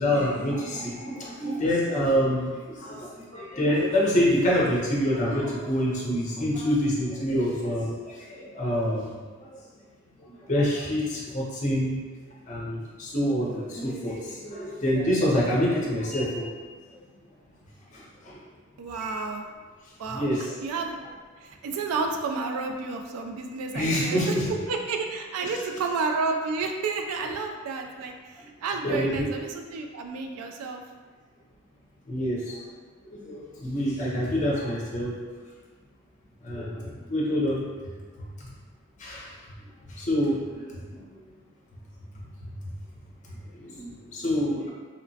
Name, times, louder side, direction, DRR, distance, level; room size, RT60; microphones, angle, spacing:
voice 1, 0.0-9.6 10.2-12.0 12.5-16.5 17.9-18.4 18.9-19.2 20.1-20.5 23.7-24.5 28.4-28.5 28.8-29.2 32.1-32.6 33.0-35.2 36.4-38.0 38.4-38.5 39.0-39.4 39.9-41.0 42.4-42.7 43.2-44.7, equal, 35° left, -4 dB, 0.5 m, -27 dB
voice 2, 18.8-19.4 20.0-21.0 21.4-24.4 24.7-30.8 34.3-34.5, right 4 dB, 85° right, 4 dB, 0.3 m, -31 dB
2.9 x 2.0 x 2.7 m, 1.5 s
head